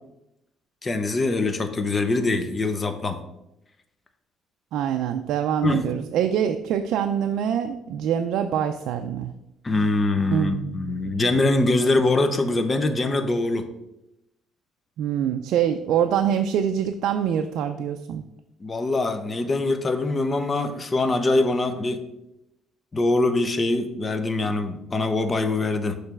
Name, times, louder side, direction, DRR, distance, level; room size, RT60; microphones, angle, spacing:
voice 1, 0.8-3.2 5.6-5.9 9.6-13.7 18.6-22.0 22.9-25.9, left 2 dB, 20° left, 8 dB, 0.7 m, -23 dB
voice 2, 4.7-9.3 10.3-11.1 15.0-18.2, right 9 dB, 70° right, 7 dB, 0.4 m, -25 dB
6.7 x 3.2 x 5.9 m, 0.88 s
cardioid pair, 140°, 0 cm